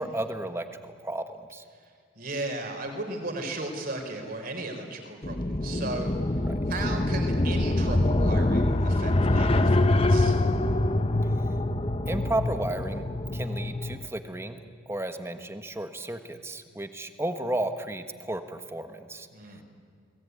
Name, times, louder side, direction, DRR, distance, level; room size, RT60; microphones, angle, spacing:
voice 1, 0.0-1.6 6.5-6.6 12.1-19.3, right 1 dB, 10° right, 8 dB, 1.3 m, -33 dB
voice 2, 2.1-6.1 6.7-10.4 19.3-19.6, right 2 dB, 45° right, 4 dB, 4.3 m, -36 dB
sound 1, 5.2-14.0, left 1 dB, 30° left, 0.9 m, -25 dB
29.5 x 20.0 x 9.5 m, 2.2 s
head